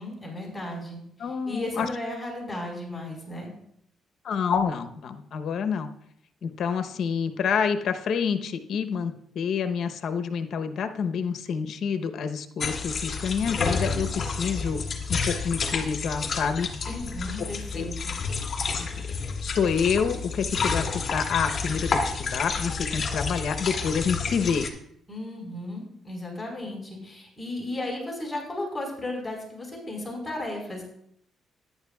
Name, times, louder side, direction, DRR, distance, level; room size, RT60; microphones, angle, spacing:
voice 1, 0.0-3.5 16.9-18.1 25.1-30.8, left 1 dB, 10° left, -3 dB, 4.5 m, -35 dB
voice 2, 1.2-1.9 4.2-5.9 6.4-14.8 15.1-16.7 17.4-17.5 17.7-17.9 18.7-18.9 19.4-24.7, left 6 dB, 65° left, 8 dB, 0.9 m, -28 dB
sound 1, 12.6-24.7, left 5 dB, 45° left, 2.1 m, -30 dB
14.0 x 10.5 x 2.4 m, 0.72 s
cardioid pair, 90°, 0 cm